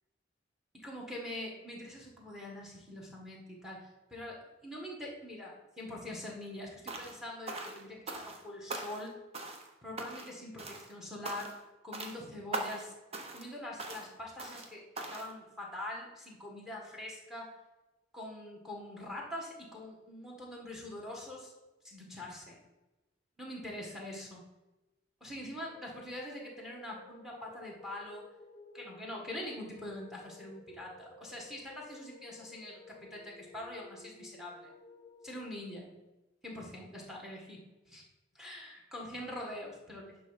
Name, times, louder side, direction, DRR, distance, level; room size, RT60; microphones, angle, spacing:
voice 1, 0.7-9.1 9.8-11.5 11.8-12.9 13.3-14.8 15.1-17.5 18.1-21.5 21.8-22.6 23.4-24.4 25.2-28.2 28.7-34.7 35.2-35.9 36.4-38.0 38.4-40.2, left 1 dB, ahead, -1 dB, 1.6 m, -44 dB
sound 1, 6.9-7.2 7.5-8.4 8.7-9.1 9.3-9.7 10.0-10.3 10.6-10.9 11.2-11.6 11.9-12.2 12.5-12.9 13.1-13.5 13.8-14.1 14.4-14.7 15.0-15.3, right 2 dB, 30° right, 0.9 m, -40 dB
sound 2, 25.4-35.6, left 3 dB, 25° left, 0.7 m, -55 dB
10.5 x 3.5 x 5.7 m, 1.1 s
head